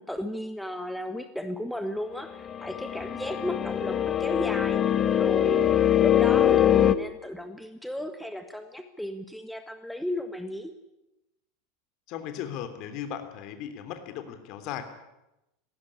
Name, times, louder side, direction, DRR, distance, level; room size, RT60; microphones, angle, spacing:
voice 1, 0.0-10.7, left 1 dB, ahead, 8 dB, 1.5 m, -35 dB
sound 1, 2.5-7.0, left 11 dB, 30° left, 1.1 m, -23 dB
voice 2, 12.1-14.8, left 9 dB, 45° left, 8 dB, 3.2 m, -37 dB
19.0 x 17.5 x 9.9 m, 0.94 s
figure-of-eight pair, 85°, 0 cm